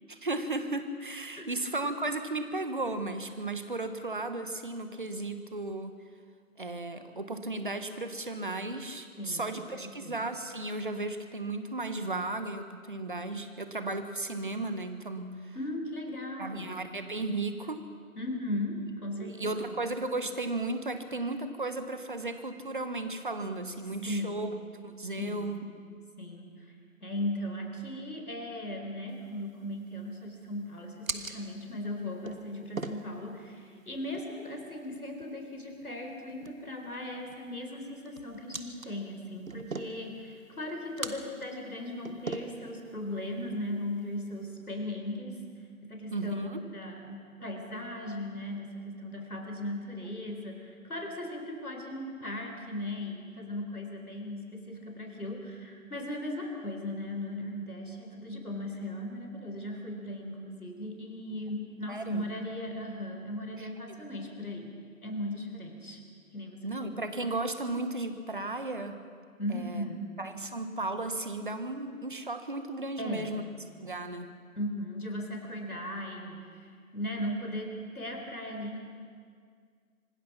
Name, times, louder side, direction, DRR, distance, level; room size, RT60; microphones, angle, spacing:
voice 1, 0.1-6.0 6.6-15.5 16.4-17.8 19.2-24.5 24.8-25.6 46.1-46.6 61.9-62.2 63.6-63.7 66.6-69.0 69.5-69.8 70.2-73.4 73.8-74.3, right 2 dB, 35° right, 9 dB, 1.2 m, -35 dB
voice 2, 9.2-10.2 15.5-16.8 18.2-19.8 24.0-24.5 25.2-25.6 26.2-26.7 27.0-45.4 45.8-66.0 66.3-67.0 69.4-70.2 73.0-73.4 74.5-78.8, left 1 dB, 80° left, 2 dB, 4.1 m, -37 dB
sound 1, 29.1-44.4, right 3 dB, 65° right, 1.6 m, -44 dB
25.5 x 19.0 x 5.8 m, 2.1 s
figure-of-eight pair, 165°, 44 cm